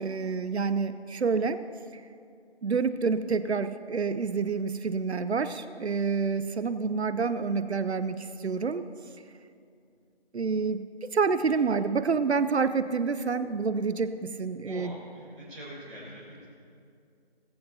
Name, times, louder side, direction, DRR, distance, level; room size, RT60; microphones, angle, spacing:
voice 1, 0.0-1.6 1.9-2.0 2.6-8.8 10.3-15.0, right 5 dB, 85° right, 12 dB, 0.7 m, -28 dB
voice 2, 14.6-16.5, equal, 5° right, -12 dB, 1.8 m, -44 dB
17.5 x 15.5 x 2.8 m, 2.4 s
figure-of-eight pair, 170°, 32 cm